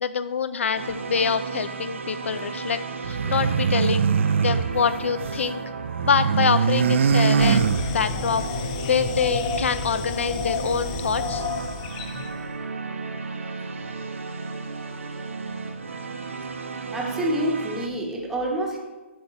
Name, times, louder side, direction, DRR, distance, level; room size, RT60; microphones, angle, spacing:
voice 1, 0.0-2.8 3.1-4.1 4.4-5.6 6.0-8.4 8.9-11.4, left 6 dB, 75° left, 11 dB, 0.5 m, -25 dB
sound 1, 0.7-17.9, right 4 dB, 85° right, 1.0 m, -34 dB
sound 2, 3.0-5.5 5.8-8.3, right 6 dB, 70° right, 0.4 m, -22 dB
sound 3, 7.4-12.4, left 7 dB, 30° left, 0.6 m, -31 dB
voice 2, 16.9-18.8, right 1 dB, 5° right, -2 dB, 1.1 m, -27 dB
7.6 x 7.1 x 4.1 m, 1.2 s
hypercardioid pair, 155°, 7 cm